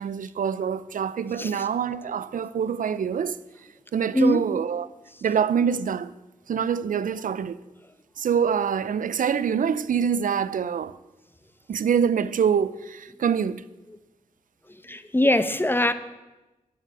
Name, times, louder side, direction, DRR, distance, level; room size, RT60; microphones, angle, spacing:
voice 1, 0.0-3.4 3.9-4.9 5.2-6.1 6.5-7.6 8.2-11.0 11.7-13.6, right 7 dB, 70° right, 0.5 m, -25 dB
voice 2, 4.1-4.4 14.9-15.9, left 1 dB, 15° left, 1.0 m, -22 dB
14.0 x 5.6 x 8.4 m
cardioid pair, 50°, 14 cm